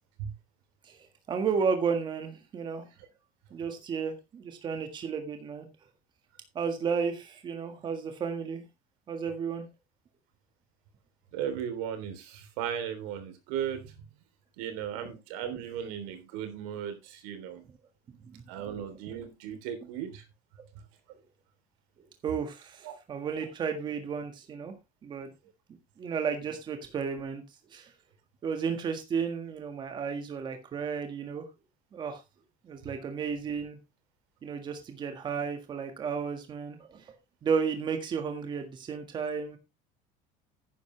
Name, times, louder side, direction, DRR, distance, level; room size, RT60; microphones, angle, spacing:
voice 1, 0.8-2.9 3.5-5.7 6.5-8.6 9.1-9.7 15.0-15.1 18.1-18.8 22.0-24.7 25.0-25.3 26.0-27.4 27.7-27.9 28.4-31.5 31.9-32.2 32.6-33.8 34.4-37.2 37.4-39.6, right 6 dB, 25° right, 1.7 m, -33 dB
voice 2, 11.3-13.9 14.6-17.6 18.5-20.2 22.8-22.9, right 9 dB, 85° right, 3.3 m, -36 dB
11.0 x 10.0 x 3.2 m
cardioid pair, 170°, 18 cm